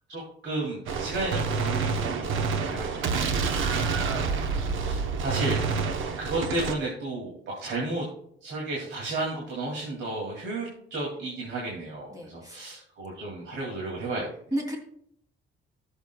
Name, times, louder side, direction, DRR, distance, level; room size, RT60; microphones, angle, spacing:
voice 1, 0.1-5.6 6.2-8.1 8.4-14.3, right 2 dB, 65° right, -3 dB, 2.4 m, -33 dB
Gunshot gunfire, 0.9-6.7, right 5 dB, 85° right, 0.9 m, -28 dB
voice 2, 12.1-12.7 14.5-14.8, right 1 dB, 20° right, 0 dB, 2.6 m, -33 dB
19.0 x 7.1 x 2.2 m, 0.71 s
cardioid pair, 155°, 20 cm